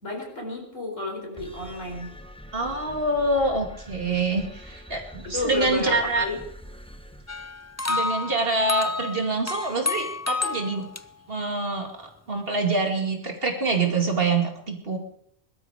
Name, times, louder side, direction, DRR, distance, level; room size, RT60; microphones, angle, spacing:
voice 1, 0.0-2.1 5.2-6.4, left 2 dB, 80° left, 1 dB, 4.8 m, -32 dB
sound 1, 1.4-8.0, equal, 5° left, 1.0 m, -44 dB
voice 2, 2.5-6.3 7.9-10.9 11.3-11.9 12.3-15.0, right 3 dB, 50° right, 2 dB, 2.6 m, -25 dB
sound 2, 7.3-11.0, left 3 dB, 20° left, 0.4 m, -30 dB
21.0 x 13.0 x 5.0 m, 0.70 s
omnidirectional pair, 1.3 m